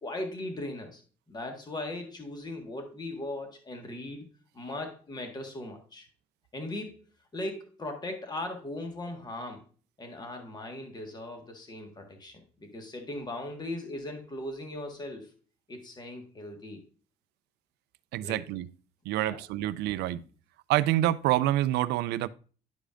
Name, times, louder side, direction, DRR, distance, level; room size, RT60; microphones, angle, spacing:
voice 1, 0.0-1.0 1.3-4.3 4.5-6.1 6.5-7.0 7.3-9.6 10.0-12.3 12.6-15.3 15.7-16.8 18.2-18.4 19.1-19.4, left 1 dB, 25° left, 1.6 m, -38 dB
voice 2, 18.1-18.7 19.1-20.2 20.7-22.3, right 14 dB, 80° right, 0.4 m, -27 dB
11.0 x 4.9 x 2.5 m
cardioid pair, 110°, 17 cm